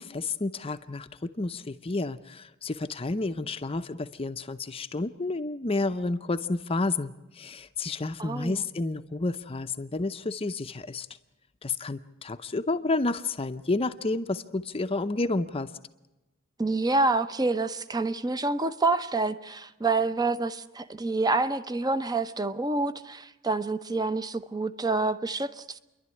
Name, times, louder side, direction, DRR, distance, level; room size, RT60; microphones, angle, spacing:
voice 1, 0.0-11.1 11.6-15.7, left 3 dB, 25° left, 9 dB, 0.6 m, -30 dB
voice 2, 8.2-8.6 16.6-25.8, right 3 dB, 20° right, 12 dB, 0.7 m, -27 dB
29.5 x 11.5 x 9.7 m, 1.0 s
head